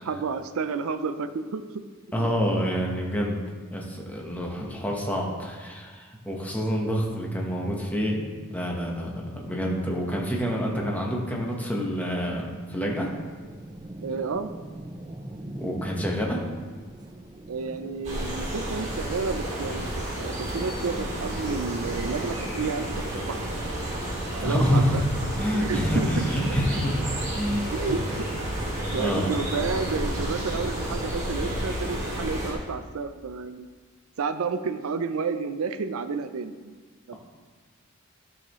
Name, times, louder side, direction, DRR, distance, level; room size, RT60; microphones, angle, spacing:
voice 1, 0.0-1.7 2.2-2.4 14.0-14.5 17.5-23.4 24.4-25.0 25.6-26.3 27.7-28.0 28.3-28.5 28.9-33.7 34.2-36.7 37.1-37.2, right 4 dB, 80° right, 11 dB, 0.5 m, -31 dB
voice 2, 2.1-3.4 3.7-13.1 15.6-16.4 24.4-25.0 25.4-26.9 27.3-27.7 28.9-29.3, equal, 5° left, -2 dB, 1.2 m, -27 dB
sound 1, 13.0-25.0, right 1 dB, 20° right, 0.5 m, -43 dB
sound 2, 18.0-32.5, right 1 dB, 35° right, 2.5 m, -31 dB
12.5 x 6.4 x 3.1 m, 1.5 s
head